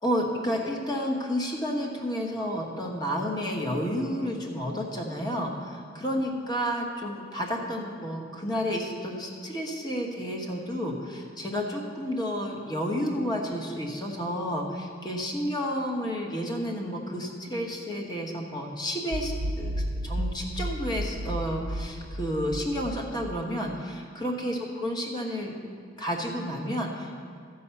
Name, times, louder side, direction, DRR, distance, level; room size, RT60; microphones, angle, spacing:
voice 1, 0.0-25.5 26.0-27.2, equal, 20° left, 0 dB, 1.1 m, -31 dB
sound 1, 19.1-23.8, equal, 85° right, 0.5 m, -33 dB
13.0 x 5.5 x 7.0 m, 2.1 s
head